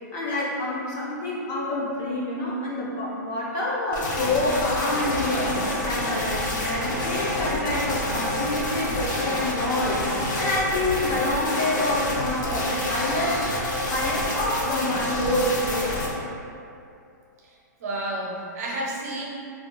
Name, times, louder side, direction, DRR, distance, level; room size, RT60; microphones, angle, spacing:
voice 1, 0.1-5.5 5.8-10.1 10.4-13.4 13.9-15.9, left 1 dB, 25° left, -6 dB, 0.5 m, -27 dB
sound 1, 3.9-16.1, left 1 dB, 75° left, 0.6 m, -28 dB
voice 2, 17.4-19.3, right 1 dB, 55° right, -3 dB, 0.6 m, -31 dB
2.4 x 2.2 x 3.8 m, 2.5 s
hypercardioid pair, 160°, 10 cm